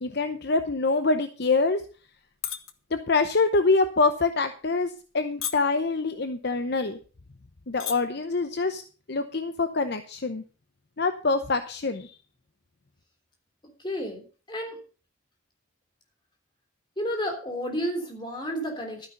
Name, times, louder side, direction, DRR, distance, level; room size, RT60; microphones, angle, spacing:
voice 1, 0.0-1.8 2.9-7.0 7.7-8.8 9.1-10.4 11.0-12.1, left 3 dB, 50° left, 9 dB, 0.7 m, -25 dB
sound 1, 2.2-2.7 3.1-3.4 4.0-4.2 4.9-5.1 5.4-5.9 6.6-6.7 7.0-7.1 7.6-7.9 8.3-8.5, left 10 dB, 80° left, 1.3 m, -32 dB
voice 2, 13.8-14.8 17.0-19.1, equal, 20° left, 2 dB, 3.4 m, -31 dB
12.5 x 9.7 x 5.3 m, 0.37 s
head